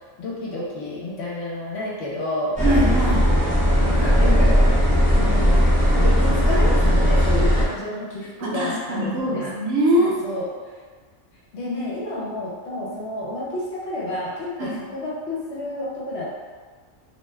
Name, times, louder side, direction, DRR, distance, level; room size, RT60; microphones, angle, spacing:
voice 1, 0.2-2.6 3.8-4.8 5.2-5.7 6.0-9.5 10.0-10.5 11.5-16.3, left 1 dB, 60° left, -5 dB, 0.9 m, -30 dB
sound 1, 2.6-7.6, equal, 10° right, 0.4 m, -17 dB
voice 2, 2.6-3.2 8.4-10.2 14.6-14.8, right 1 dB, 80° right, -4 dB, 1.1 m, -22 dB
2.8 x 2.3 x 3.2 m, 1.5 s
omnidirectional pair, 1.4 m